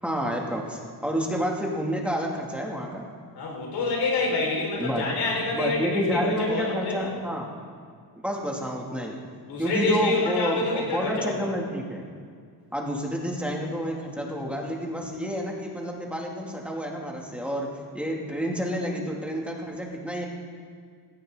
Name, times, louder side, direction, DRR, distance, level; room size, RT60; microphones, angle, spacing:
voice 1, 0.0-3.1 4.8-5.0 5.5-7.5 8.2-9.2 9.6-12.0 12.7-17.7 17.9-20.3, equal, 5° right, -1 dB, 2.6 m, -29 dB
voice 2, 3.3-7.1 9.4-11.5, left 2 dB, 90° left, -2 dB, 5.3 m, -27 dB
18.0 x 16.5 x 4.0 m, 2.1 s
cardioid pair, 100°, 39 cm